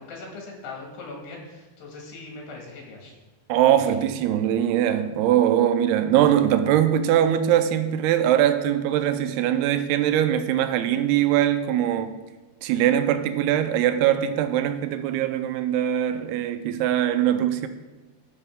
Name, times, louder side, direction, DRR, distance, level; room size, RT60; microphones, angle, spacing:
voice 1, 0.0-3.1 3.7-3.8, left 3 dB, 80° left, 4.0 m, -40 dB
voice 2, 3.5-12.1 12.6-17.7, right 11 dB, 80° right, 2.6 m, -22 dB
14.0 x 6.8 x 3.6 m
omnidirectional pair, 4.7 m